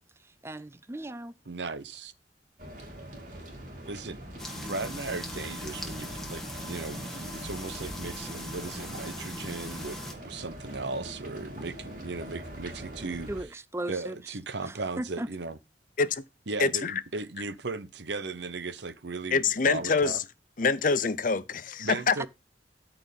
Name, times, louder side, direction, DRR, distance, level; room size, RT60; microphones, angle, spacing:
voice 1, 0.4-1.3 13.3-14.2 14.6-15.3, right 1 dB, 15° right, 0.4 m, -37 dB
voice 2, 1.5-2.1 3.9-4.2 4.5-10.0 10.2-13.3 13.9-15.6 16.5-20.2 21.8-22.3, right 3 dB, 70° right, 0.9 m, -37 dB
sound 1, 2.6-13.4, right 1 dB, 45° right, 3.4 m, -43 dB
sound 2, 4.4-10.1, left 1 dB, ahead, 1.6 m, -40 dB
voice 3, 16.6-16.9 19.3-20.2 20.6-22.3, left 5 dB, 45° left, 0.7 m, -25 dB
13.0 x 4.5 x 5.4 m
head